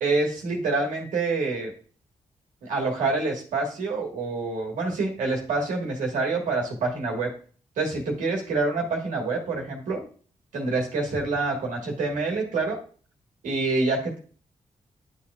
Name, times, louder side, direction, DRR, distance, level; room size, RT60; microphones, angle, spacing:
voice 1, 0.0-1.7 2.6-7.3 7.8-10.0 10.5-12.8 13.4-14.2, right 3 dB, 85° right, 0 dB, 1.5 m, -26 dB
9.9 x 4.2 x 2.4 m, 0.41 s
supercardioid pair, 45°, 13 cm